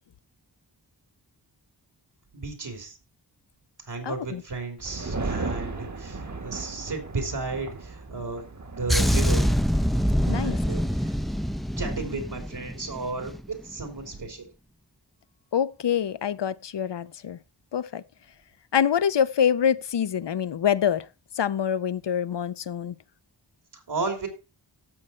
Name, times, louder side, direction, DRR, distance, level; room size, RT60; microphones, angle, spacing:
voice 1, 2.3-3.0 3.9-8.4 8.7-9.4 10.2-11.1 11.8-13.3 13.6-14.5 23.7-24.3, right 3 dB, 70° right, 3.2 m, -33 dB
voice 2, 4.0-4.4 10.3-10.6 15.5-17.4 17.7-18.0 18.7-21.1 21.4-23.0, left 8 dB, 75° left, 0.7 m, -25 dB
sound 1, 4.8-10.3, right 3 dB, 40° right, 1.5 m, -36 dB
sound 2, 8.9-13.5 13.7-14.0, equal, ahead, 0.6 m, -25 dB
12.5 x 7.6 x 4.3 m
wide cardioid pair, 90°, 42 cm